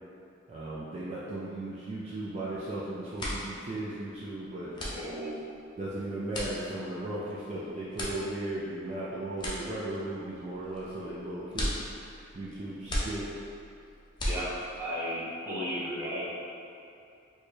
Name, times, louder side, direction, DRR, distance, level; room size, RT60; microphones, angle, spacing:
voice 1, 0.5-4.8 5.8-11.7 12.1-13.3, right 1 dB, 35° right, -9 dB, 0.4 m, -36 dB
sound 1, 2.5-2.7 3.0-14.9, equal, 25° left, 0.6 m, -37 dB
voice 2, 4.8-5.4 14.3-16.3, equal, 15° right, -9 dB, 0.8 m, -34 dB
4.3 x 2.3 x 3.2 m, 2.6 s
head